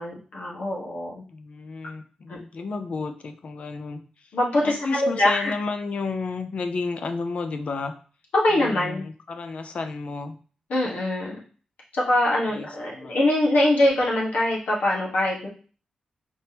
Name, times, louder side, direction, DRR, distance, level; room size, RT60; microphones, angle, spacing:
voice 1, 0.0-1.2 2.3-2.4 4.3-5.5 8.3-9.0 10.7-11.3 11.9-15.5, left 1 dB, 85° left, -4 dB, 1.4 m, -23 dB
voice 2, 1.3-7.9 8.5-10.4 12.5-13.2, left 4 dB, 55° left, 7 dB, 0.5 m, -32 dB
4.4 x 3.5 x 2.9 m, 0.40 s
wide cardioid pair, 110°, 2 cm